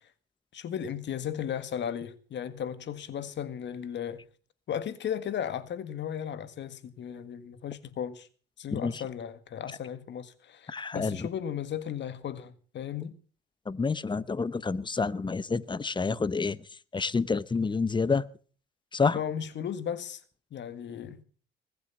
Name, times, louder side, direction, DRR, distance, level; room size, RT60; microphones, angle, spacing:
voice 1, 0.5-4.2 4.7-8.3 8.6-13.2 19.1-20.2 20.5-21.2, left 9 dB, 65° left, 1.8 m, -35 dB
voice 2, 10.7-11.3 13.7-16.6 16.9-18.3 18.9-19.2, left 4 dB, 25° left, 0.9 m, -28 dB
21.0 x 8.1 x 7.1 m
cardioid pair, 90°, 20 cm